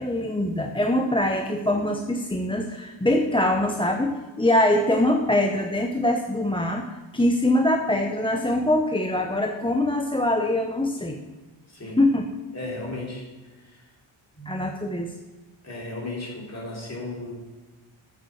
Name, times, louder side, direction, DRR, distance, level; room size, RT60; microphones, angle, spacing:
voice 1, 0.0-6.9 7.1-11.2 12.0-12.2 14.5-15.1, left 1 dB, 10° left, 3 dB, 0.7 m, -23 dB
voice 2, 11.7-12.1 12.5-13.2 13.6-13.9 14.3-14.7 15.6-17.4, left 2 dB, 30° left, -3 dB, 3.6 m, -35 dB
8.1 x 7.1 x 7.1 m, 1.2 s
wide cardioid pair, 100°, 50 cm